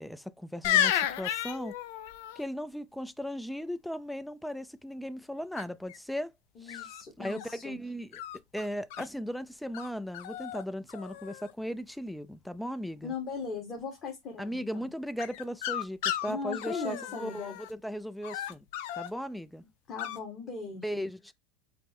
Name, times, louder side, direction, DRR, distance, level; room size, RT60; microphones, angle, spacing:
voice 1, 0.0-1.8 2.4-6.3 6.6-6.9 7.2-8.1 8.5-13.1 14.4-18.6 19.0-19.6 20.7-21.3, equal, ahead, 0.4 m, -37 dB
sound 1, 0.6-2.4 5.6-6.0 6.7-7.5 8.1-9.1 9.7-9.9 10.1-10.6 10.9-11.5 15.2-17.7 18.2-19.1 20.0-20.2, left 11 dB, 70° left, 0.5 m, -33 dB
voice 2, 6.5-7.8 13.0-14.9 16.2-17.5 19.9-21.0, left 5 dB, 35° left, 1.6 m, -39 dB
5.6 x 2.1 x 3.4 m
hypercardioid pair, 105°, 0 cm